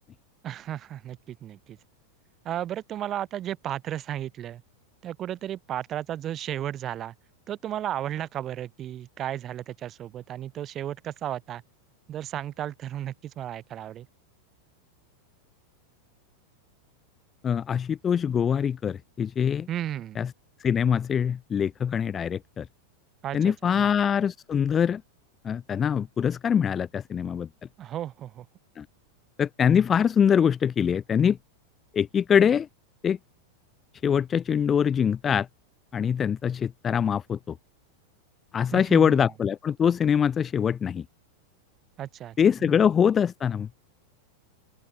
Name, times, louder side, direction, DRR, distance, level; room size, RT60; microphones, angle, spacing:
voice 1, 0.4-1.8 2.4-4.6 5.0-7.1 7.5-11.6 12.1-14.1 19.7-20.2 23.2-23.9 27.8-28.5 38.7-39.2 42.0-42.7, right 11 dB, 30° right, 4.0 m, -34 dB
voice 2, 17.4-19.7 20.1-20.3 20.6-22.7 23.3-25.0 25.4-27.5 28.7-28.8 29.4-31.4 31.9-32.7 33.0-33.2 34.0-35.5 35.9-37.5 38.5-41.0 42.4-43.7, left 8 dB, 20° left, 1.8 m, -23 dB
open air
figure-of-eight pair, 90°, 0 cm